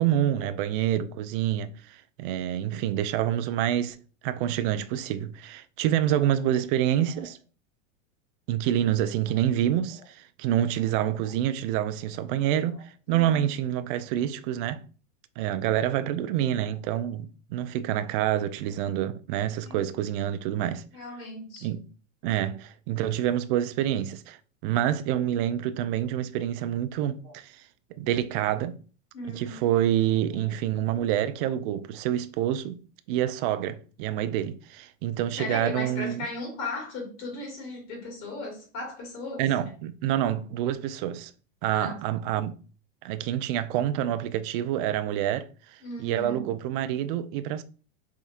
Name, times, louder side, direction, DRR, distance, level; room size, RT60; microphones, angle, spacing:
voice 1, 0.0-4.0 4.2-7.4 8.5-14.8 15.4-20.8 21.6-21.8 22.2-24.4 24.6-27.6 28.0-28.8 29.3-36.3 39.4-41.3 41.6-42.5 43.0-47.6, right 11 dB, 45° right, 0.4 m, -27 dB
voice 2, 13.1-13.4 19.6-20.0 20.9-21.7 27.2-27.3 29.1-29.6 30.3-30.5 35.4-39.5 41.7-42.0 45.8-46.5, left 2 dB, 50° left, 2.6 m, -37 dB
3.6 x 3.5 x 4.2 m
supercardioid pair, 145°, 39 cm